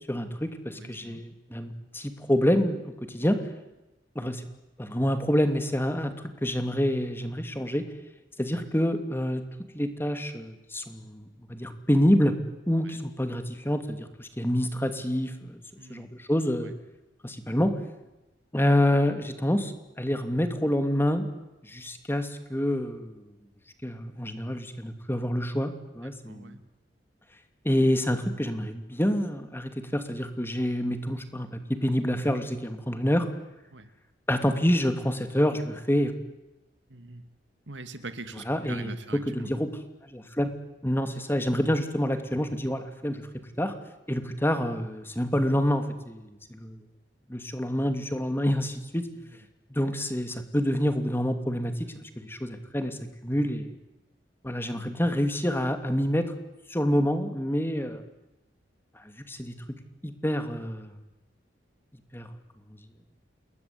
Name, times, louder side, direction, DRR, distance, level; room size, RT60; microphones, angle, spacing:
voice 1, 0.1-3.4 4.1-4.5 4.8-7.8 8.4-9.4 9.7-12.4 12.7-15.6 15.9-16.7 17.2-17.7 18.5-21.3 21.6-23.2 23.8-26.6 27.6-33.3 34.3-36.1 38.3-39.7 40.0-40.5 40.8-43.3 43.6-43.7 44.1-46.8 47.3-49.1 49.7-53.0 53.2-53.7 54.4-56.3 56.7-58.0 59.3-59.5 60.0-60.9 62.1-62.3, equal, 15° left, 8 dB, 2.8 m, -27 dB
voice 2, 0.8-1.2 15.8-16.1 26.3-26.6 33.7-33.9 36.9-37.2 37.7-39.2, right 3 dB, 85° right, 10 dB, 2.6 m, -42 dB
28.5 x 21.5 x 9.7 m, 0.98 s
head